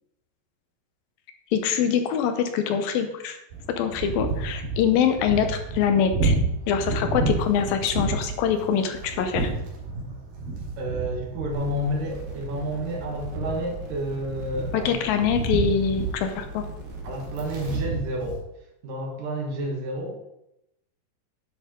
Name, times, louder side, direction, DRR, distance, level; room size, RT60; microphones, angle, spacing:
voice 1, 1.5-3.4 3.7-6.3 6.7-9.5 14.7-16.7, left 7 dB, 85° left, 7 dB, 2.8 m, -24 dB
sound 1, 3.5-18.4, right 3 dB, 90° right, 4.0 m, -31 dB
voice 2, 10.8-15.0 17.0-18.4 18.8-20.2, equal, 70° right, 1 dB, 3.2 m, -30 dB
earth on fire, 11.5-17.5, right 1 dB, 50° right, 1.3 m, -40 dB
10.0 x 8.0 x 3.8 m, 0.83 s
omnidirectional pair, 4.1 m